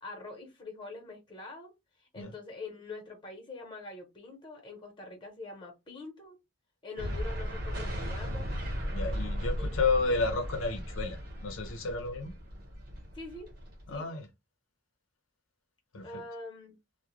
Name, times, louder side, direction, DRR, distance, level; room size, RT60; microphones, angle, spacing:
voice 1, 0.0-1.7 2.0-6.4 6.8-8.5 9.6-9.7 10.0-10.2 13.1-13.5 13.9-14.1 16.0-16.8, left 3 dB, 25° left, 0.9 m, -44 dB
sound 1, 7.0-14.0, equal, 50° right, 1.1 m, -36 dB
voice 2, 8.9-12.3 13.9-14.3 15.9-16.2, left 3 dB, 85° left, 0.6 m, -31 dB
2.3 x 2.1 x 3.0 m
head